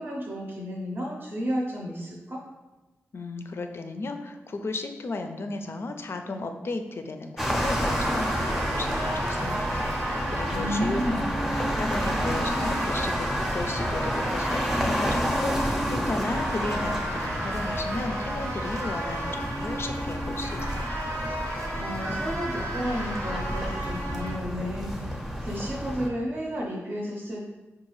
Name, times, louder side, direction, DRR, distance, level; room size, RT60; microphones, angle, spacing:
voice 1, 0.0-2.4 10.5-11.4 21.8-27.4, equal, 50° right, -3 dB, 0.6 m, -32 dB
voice 2, 3.1-11.0 11.3-13.3 13.5-21.0, left 3 dB, 55° left, 6 dB, 0.4 m, -34 dB
sound 1, 7.4-26.1, equal, 5° right, 0.6 m, -30 dB
sound 2, 7.5-24.3, right 1 dB, 85° right, 0.8 m, -34 dB
4.6 x 2.3 x 3.0 m, 1.1 s
cardioid pair, 70°, 5 cm